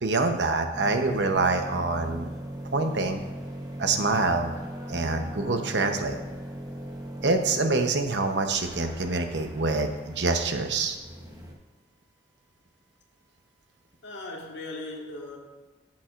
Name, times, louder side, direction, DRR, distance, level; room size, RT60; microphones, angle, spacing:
voice 1, 0.0-2.3 2.7-3.2 3.8-4.5 4.9-6.2 7.2-11.0, right 3 dB, 80° right, 6 dB, 0.9 m, -26 dB
sound 1, 0.7-11.5, right 1 dB, 20° right, 1.0 m, -39 dB
voice 2, 14.0-15.4, left 2 dB, 90° left, -1 dB, 1.7 m, -38 dB
14.5 x 7.5 x 2.5 m, 1.2 s
head